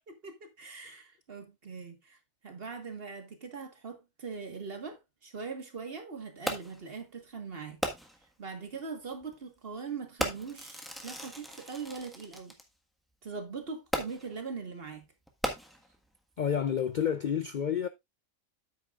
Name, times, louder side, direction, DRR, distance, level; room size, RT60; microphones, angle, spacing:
voice 1, 0.1-2.2 2.4-7.8 8.4-12.5 13.2-15.1, right 5 dB, 45° right, 1.7 m, -41 dB
Fireworks, 6.5-6.9 7.8-8.3 9.2-9.4 10.2-12.6 13.9-14.4 15.3-16.1 16.8-16.9, equal, ahead, 1.3 m, -36 dB
voice 2, 16.4-17.9, left 8 dB, 65° left, 0.4 m, -29 dB
9.4 x 8.6 x 2.4 m
omnidirectional pair, 1.4 m